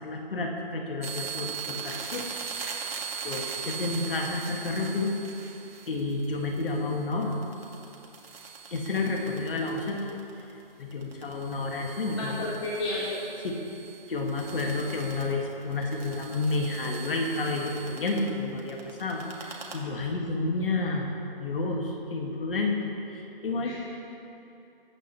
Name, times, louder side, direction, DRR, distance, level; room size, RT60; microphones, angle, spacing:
voice 1, 0.0-2.3 3.2-5.1 5.9-7.3 8.7-10.0 10.8-12.5 13.4-13.6 14.1-21.1 21.4-23.7, left 3 dB, 65° left, 0 dB, 2.0 m, -30 dB
sound 1, 1.0-10.6 10.9-18.3 18.6-19.7, right 6 dB, 75° right, 2.4 m, -40 dB
voice 2, 12.1-13.2 23.6-23.7, left 2 dB, 25° left, -7 dB, 1.4 m, -32 dB
21.5 x 9.0 x 3.1 m, 2.9 s
hypercardioid pair, 175°, 30 cm